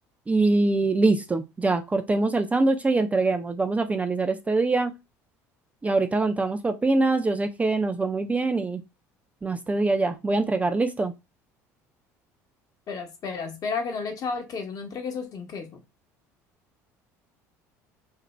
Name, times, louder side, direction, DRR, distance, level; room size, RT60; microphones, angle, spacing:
voice 1, 0.3-4.9 5.8-8.8 9.4-11.1, right 3 dB, 15° right, 0.4 m, -24 dB
voice 2, 12.9-15.8, left 5 dB, 45° left, 0.8 m, -32 dB
2.5 x 2.1 x 3.0 m
hypercardioid pair, 75°, 8 cm